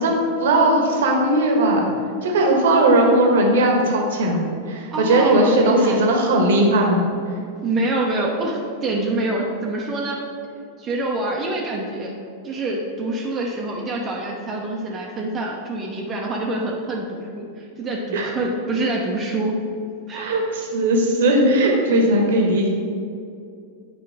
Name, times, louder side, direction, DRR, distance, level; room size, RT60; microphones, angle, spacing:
voice 1, 0.0-1.8 2.2-7.0 18.1-18.3 20.1-22.7, right 1 dB, 60° right, 1 dB, 1.3 m, -18 dB
voice 2, 4.9-6.0 7.6-10.2 10.8-12.1 12.4-19.6 20.1-20.2, right 2 dB, 25° right, -1 dB, 0.9 m, -26 dB
9.5 x 5.0 x 3.4 m, 2.4 s
figure-of-eight pair, 90°, 0 cm